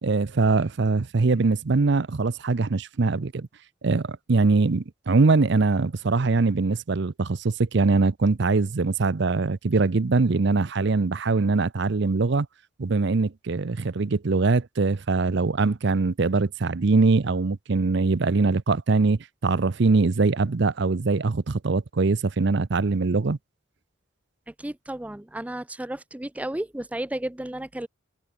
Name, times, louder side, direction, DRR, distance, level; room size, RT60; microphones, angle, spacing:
voice 1, 0.0-3.5 3.8-12.5 12.8-23.4, right 3 dB, 60° right, 0.6 m, -22 dB
voice 2, 24.5-27.9, right 1 dB, 5° right, 0.4 m, -33 dB
head